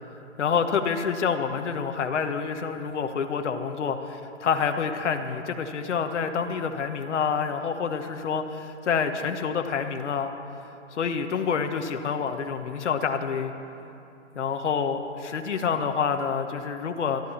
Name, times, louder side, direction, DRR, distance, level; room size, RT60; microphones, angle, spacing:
voice 1, 0.4-10.3 10.9-13.5 14.3-17.2, left 6 dB, 65° left, 6 dB, 1.2 m, -27 dB
13.0 x 12.0 x 7.2 m, 2.8 s
hypercardioid pair, 175°, 38 cm